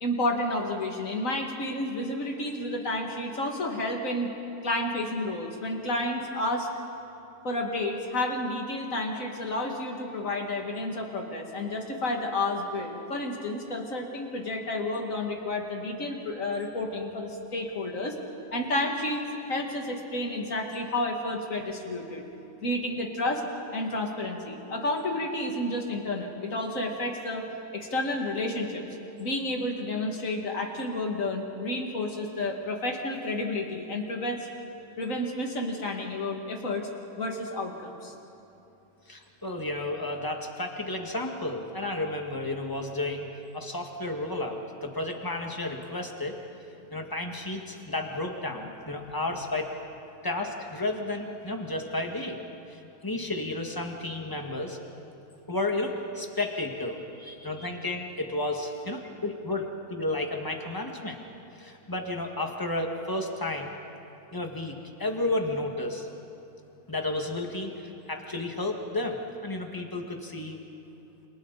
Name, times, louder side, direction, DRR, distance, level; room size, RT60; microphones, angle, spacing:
voice 1, 0.0-4.3 4.6-6.7 7.4-18.2 18.5-19.2 19.5-22.3 22.6-23.4 23.7-27.4 27.7-28.8 29.2-34.5 35.0-36.9 37.2-38.1 49.0-49.1 57.2-57.7, left 1 dB, 45° left, 1 dB, 2.5 m, -31 dB
voice 2, 39.1-46.4 46.9-49.7 50.2-52.4 52.7-54.8 55.5-57.0 57.4-61.2 61.6-63.7 64.3-66.1 66.9-70.6, left 2 dB, 10° left, 2 dB, 1.7 m, -32 dB
29.0 x 27.0 x 4.1 m, 3.0 s
omnidirectional pair, 2.0 m